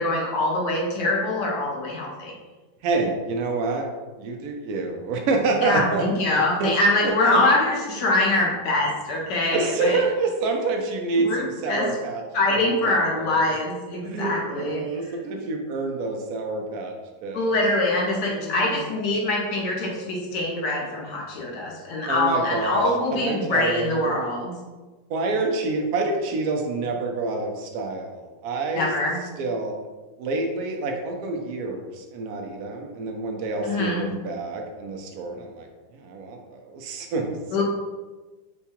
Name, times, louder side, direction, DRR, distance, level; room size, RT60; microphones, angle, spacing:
voice 1, 0.0-2.3 5.6-10.0 11.2-11.9 12.3-14.8 17.3-24.5 28.7-29.2 33.6-34.1 37.5-37.6, left 2 dB, 70° left, -1 dB, 1.4 m, -24 dB
voice 2, 2.8-3.9 4.2-6.7 7.0-7.4 7.9-8.0 9.5-12.2 12.5-13.6 14.0-16.9 17.2-17.5 18.2-18.8 22.1-24.2 25.1-28.9 29.4-29.7 30.2-35.7 35.9-37.6, right 3 dB, 75° right, 2 dB, 0.8 m, -28 dB
4.6 x 2.2 x 2.8 m, 1.2 s
omnidirectional pair, 2.1 m